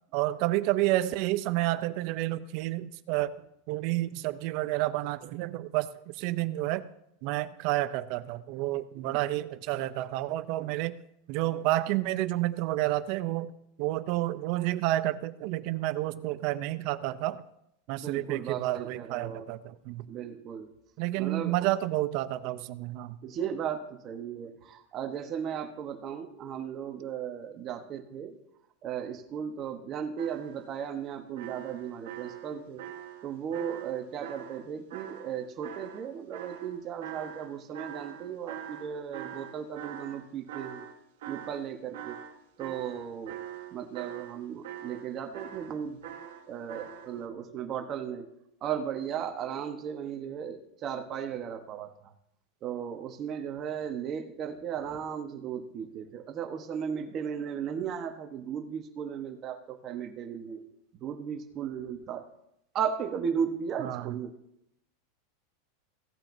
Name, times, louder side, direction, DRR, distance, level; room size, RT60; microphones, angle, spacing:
voice 1, 0.1-3.3 3.7-6.9 7.2-11.0 11.3-13.5 13.8-17.4 17.9-20.0 21.0-23.2 63.8-64.1, right 16 dB, 50° right, 14 dB, 0.5 m, -30 dB
voice 2, 18.0-19.5 20.1-20.7 21.2-21.7 23.2-28.4 28.8-32.8 33.2-40.9 41.3-42.2 42.6-43.4 43.7-46.0 46.5-48.3 48.6-52.1 52.6-60.7 60.9-62.3 62.7-64.3, right 8 dB, 30° right, 6 dB, 1.1 m, -36 dB
sound 1, 30.2-30.7 31.4-35.4 35.6-41.7 41.9-47.1, right 10 dB, 80° right, 1.3 m, -43 dB
16.5 x 8.8 x 2.7 m, 0.77 s
supercardioid pair, 155°, 0 cm